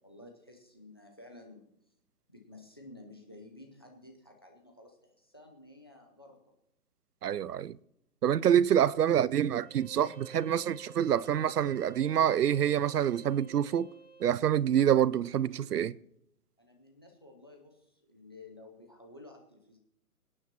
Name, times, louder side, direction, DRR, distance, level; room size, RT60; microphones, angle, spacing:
voice 1, 0.0-1.7 2.3-6.4 16.6-19.8, left 2 dB, 15° left, 0.7 m, -53 dB
voice 2, 7.2-7.8 8.2-13.9 14.2-16.0, right 10 dB, 80° right, 0.6 m, -26 dB
Bowed string instrument, 9.6-14.4, right 3 dB, 10° right, 5.1 m, -52 dB
23.5 x 9.6 x 2.9 m
hypercardioid pair, 170°, 47 cm